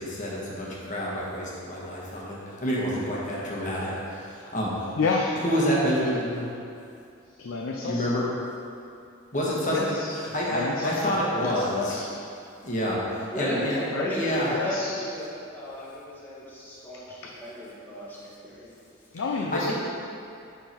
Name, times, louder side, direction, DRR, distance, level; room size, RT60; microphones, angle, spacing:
voice 1, 0.0-4.9 5.4-6.5 7.8-8.2 9.3-10.0 10.3-12.0 12.6-13.8 14.1-14.5 19.5-19.7, equal, 40° left, -5 dB, 1.4 m, -28 dB
voice 2, 5.0-5.4 7.4-8.1 9.7-10.2 10.5-11.2 11.4-12.1 13.6-14.1 14.5-15.0 19.1-19.7, left 4 dB, 80° left, 0 dB, 0.5 m, -30 dB
voice 3, 13.3-18.7, left 1 dB, 10° left, -8 dB, 1.3 m, -34 dB
8.9 x 3.8 x 4.4 m, 2.5 s
head